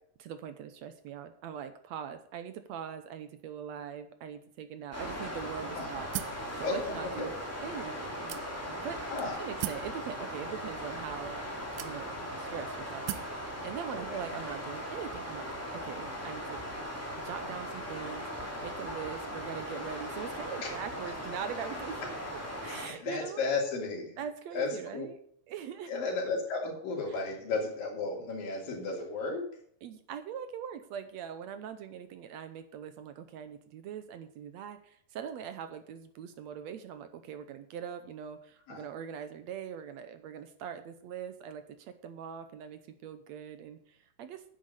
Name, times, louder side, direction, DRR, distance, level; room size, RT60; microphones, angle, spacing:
voice 1, 0.2-6.1 6.6-7.3 7.6-8.4 8.8-9.0 9.4-16.6 17.2-23.4 24.2-25.1 25.5-25.9 29.8-44.4, right 8 dB, 70° right, 10 dB, 1.8 m, -42 dB
sound 1, 4.9-22.9, equal, 5° left, 2.6 m, -39 dB
sound 2, 6.1-6.5 7.3-7.4 8.3-8.8 9.6-9.9 10.9-11.0 11.8-12.3 13.1-13.4, right 15 dB, 90° right, 2.3 m, -37 dB
voice 2, 6.6-7.3 9.1-9.5 13.9-14.2 20.6-20.7 21.1-21.2 22.7-24.2 24.5-25.1 25.9-29.4 38.7-38.8, left 3 dB, 85° left, 0 dB, 4.6 m, -34 dB
10.5 x 8.5 x 6.6 m, 0.64 s
omnidirectional pair, 3.9 m